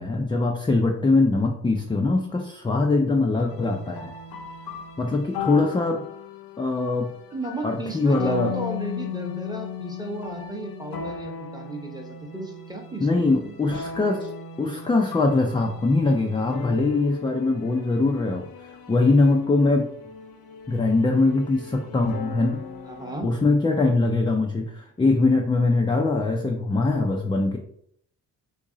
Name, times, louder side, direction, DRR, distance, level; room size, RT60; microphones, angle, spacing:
voice 1, 0.0-4.1 5.0-6.0 6.6-7.1 7.6-8.5 13.0-14.3 14.6-18.4 18.9-19.9 20.7-22.6 23.2-27.6, left 3 dB, 15° left, 2 dB, 0.3 m, -22 dB
sound 1, 3.5-23.1, left 6 dB, 60° left, 0.6 m, -37 dB
voice 2, 7.3-13.5 22.8-23.3, right 2 dB, 10° right, 3 dB, 0.8 m, -34 dB
2.9 x 2.7 x 3.7 m, 0.67 s
cardioid pair, 75°, 40 cm